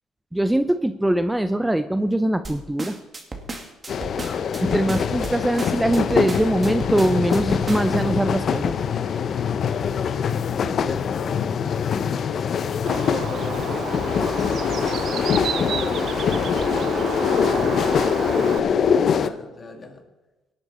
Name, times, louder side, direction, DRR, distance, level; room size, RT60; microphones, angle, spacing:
voice 1, 0.3-3.0 4.6-8.7, right 1 dB, 10° right, 11 dB, 0.6 m, -22 dB
sound 1, 2.4-8.0, right 3 dB, 30° right, 2.4 m, -34 dB
sound 2, 3.9-19.3, left 7 dB, 55° left, 0.8 m, -23 dB
voice 2, 10.5-11.3 12.7-20.0, left 2 dB, 35° left, 4 dB, 2.5 m, -38 dB
Bird, 12.9-18.6, right 9 dB, 65° right, 0.5 m, -31 dB
17.5 x 9.7 x 4.3 m, 1.1 s
supercardioid pair, 75°, 0 cm